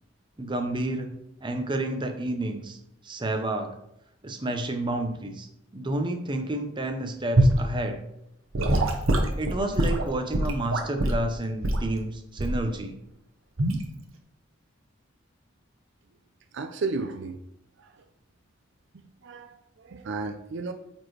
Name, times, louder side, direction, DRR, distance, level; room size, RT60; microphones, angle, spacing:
voice 1, 0.4-1.1 1.4-2.8 3.0-3.7 4.2-5.5 5.7-8.0 9.4-13.0, right 1 dB, 25° right, 5 dB, 0.7 m, -30 dB
Gurgling / Sink (filling or washing) / Liquid, 7.4-7.6 8.5-11.2 11.6-11.9 12.4-12.7 13.6-13.8, right 1 dB, 90° right, 1.0 m, -23 dB
voice 2, 16.5-17.4 17.8-17.9 18.9-20.7, right 3 dB, 60° right, 8 dB, 0.5 m, -33 dB
8.6 x 4.4 x 3.3 m, 0.78 s
head